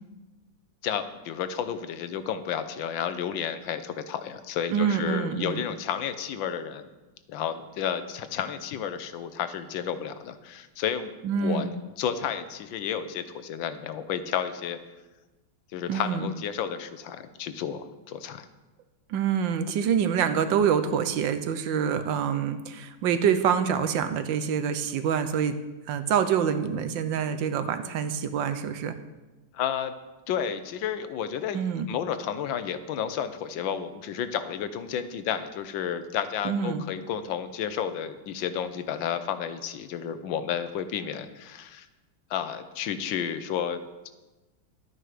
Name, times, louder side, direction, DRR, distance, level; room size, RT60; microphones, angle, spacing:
voice 1, 0.8-6.9 7.3-11.7 12.0-14.8 15.7-18.5 29.5-29.9 30.3-31.6 31.9-41.9 42.3-43.8, left 8 dB, 80° left, 11 dB, 1.5 m, -31 dB
voice 2, 4.7-5.6 11.2-11.7 15.9-16.3 19.1-25.5 25.9-29.0 31.5-31.9 36.4-36.9, right 7 dB, 75° right, 10 dB, 1.4 m, -26 dB
11.5 x 9.1 x 4.9 m, 1.1 s
omnidirectional pair, 2.1 m